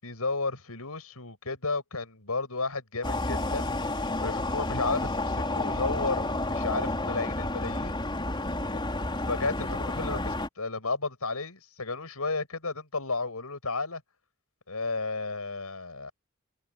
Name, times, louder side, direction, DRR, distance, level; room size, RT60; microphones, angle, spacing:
voice 1, 0.0-3.7 4.0-8.0 8.7-8.8 9.1-14.0 14.7-16.1, left 3 dB, 85° left, 6.1 m, -33 dB
sound 1, 3.0-10.5, left 2 dB, 20° left, 4.1 m, -30 dB
head